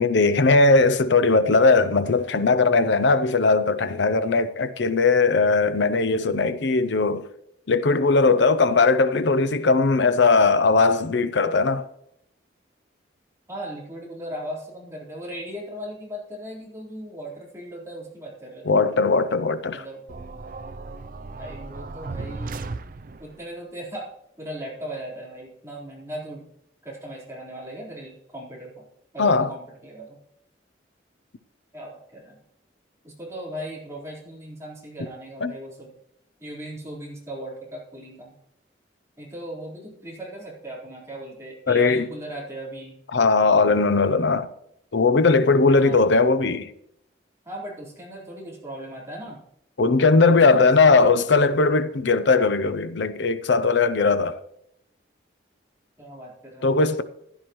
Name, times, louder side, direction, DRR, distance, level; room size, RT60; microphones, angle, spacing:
voice 1, 0.0-7.2 7.7-11.8 18.7-19.8 29.2-29.5 35.4-35.5 41.7-42.1 43.1-44.5 44.9-46.7 49.8-54.4 56.6-57.0, left 3 dB, 70° left, 0.7 m, -19 dB
voice 2, 13.5-18.8 19.7-20.0 21.4-22.7 23.2-24.1 24.4-26.5 26.8-28.8 29.1-30.2 31.7-32.4 33.0-35.9 36.4-38.3 39.2-43.0 45.7-46.2 47.4-49.4 50.5-51.2 56.0-56.7, right 1 dB, 15° right, 4.1 m, -37 dB
sound 1, 20.1-23.4, right 3 dB, 45° right, 0.4 m, -36 dB
15.5 x 10.5 x 3.1 m
head